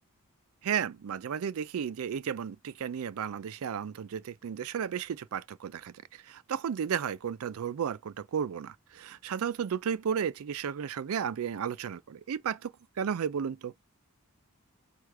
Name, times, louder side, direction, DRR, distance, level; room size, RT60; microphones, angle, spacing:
voice 1, 0.6-13.7, right 7 dB, 70° right, 0.4 m, -33 dB
4.6 x 2.4 x 4.8 m
head